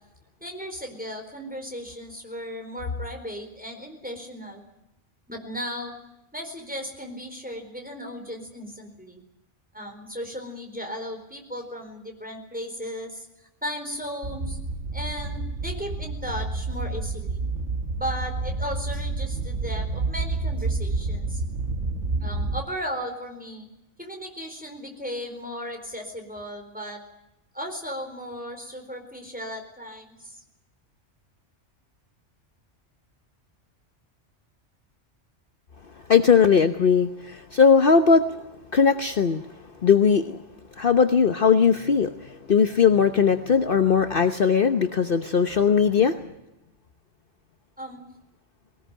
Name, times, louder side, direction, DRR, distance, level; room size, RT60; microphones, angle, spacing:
voice 1, 0.4-4.6 5.3-5.9 6.3-9.2 9.7-13.3 13.6-14.6 14.9-17.4 18.0-21.4 22.2-23.7 24.0-27.0 27.5-30.4 47.8-48.0, equal, 5° right, 3 dB, 4.4 m, -36 dB
sound 1, 14.2-22.6, right 3 dB, 75° right, 1.8 m, -29 dB
voice 2, 36.1-38.5 38.7-39.4 39.8-40.4 40.8-46.2, left 6 dB, 50° left, 8 dB, 1.1 m, -19 dB
21.0 x 19.0 x 9.1 m, 0.91 s
omnidirectional pair, 1.2 m